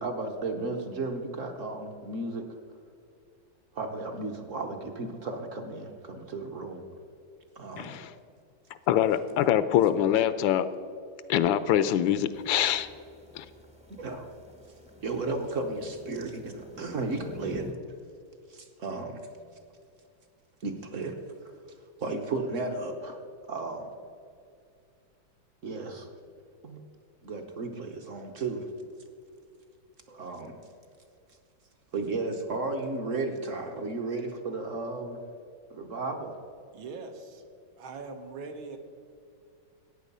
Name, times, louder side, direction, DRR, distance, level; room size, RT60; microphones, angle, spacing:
voice 1, 0.0-2.4 3.7-6.8 7.6-8.0 14.0-14.3 15.0-17.7 18.5-19.2 20.6-21.2 22.0-23.2 23.5-23.9 25.6-26.1 26.6-26.8 27.2-28.7 30.1-30.6 31.9-35.2 35.7-36.4, right 3 dB, 50° right, 5 dB, 1.1 m, -34 dB
voice 2, 7.8-8.1 8.9-10.7 11.3-12.9 13.3-13.5, left 10 dB, 75° left, 13 dB, 1.3 m, -24 dB
sound 1, 12.3-17.7, left 1 dB, 5° right, 0.5 m, -47 dB
voice 3, 36.7-37.4 37.8-38.8, right 4 dB, 75° right, 5 dB, 1.9 m, -41 dB
14.5 x 9.1 x 5.4 m, 2.4 s
omnidirectional pair, 2.2 m